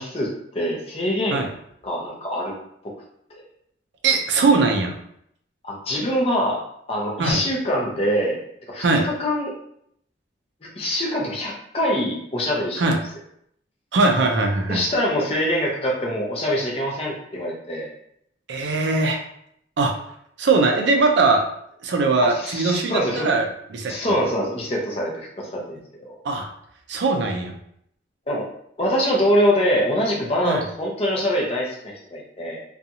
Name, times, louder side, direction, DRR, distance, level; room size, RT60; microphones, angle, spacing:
voice 1, 0.0-1.5 1.8-2.6 3.3-3.4 5.6-6.6 6.9-8.4 8.7-9.5 10.6-12.9 14.7-17.9 22.2-23.3 23.9-26.2 28.3-28.5 28.8-32.6, equal, 30° left, -2 dB, 0.6 m, -24 dB
voice 2, 4.0-4.9 7.2-7.4 8.8-9.1 12.8-13.0 13.9-14.8 18.5-19.2 19.8-19.9 20.4-21.4 21.8-23.5 23.7-23.9 26.2-26.5 26.9-27.5 30.4-30.7, right 3 dB, 65° right, 3 dB, 0.4 m, -20 dB
2.7 x 2.3 x 2.7 m, 0.72 s
head